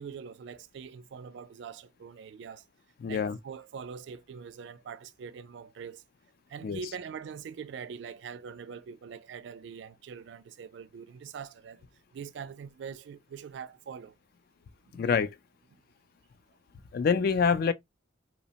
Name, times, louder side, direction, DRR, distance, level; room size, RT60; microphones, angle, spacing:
voice 1, 0.0-2.6 3.1-6.0 6.5-11.9 12.1-14.1, right 6 dB, 65° right, 0.3 m, -43 dB
voice 2, 3.0-3.4 6.6-6.8 14.9-15.4 16.9-17.7, left 6 dB, 50° left, 0.3 m, -26 dB
2.9 x 2.1 x 2.7 m
head